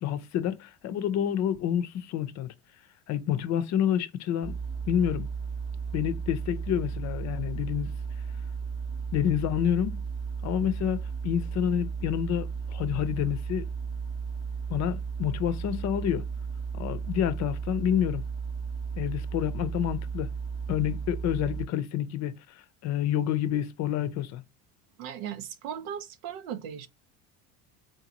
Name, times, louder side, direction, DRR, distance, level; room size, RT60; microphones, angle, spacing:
voice 1, 0.0-2.5 3.1-4.6 4.9-5.3 5.9-7.9 9.1-10.0 10.4-13.7 14.7-16.3 16.7-18.2 19.0-20.3 20.7-24.4, left 10 dB, 50° left, 0.6 m, -28 dB
sound 1, 4.4-21.7, right 6 dB, 10° left, 0.8 m, -34 dB
voice 2, 25.0-26.9, right 9 dB, 90° right, 0.7 m, -37 dB
3.7 x 2.6 x 2.8 m
cardioid pair, 125°, 36 cm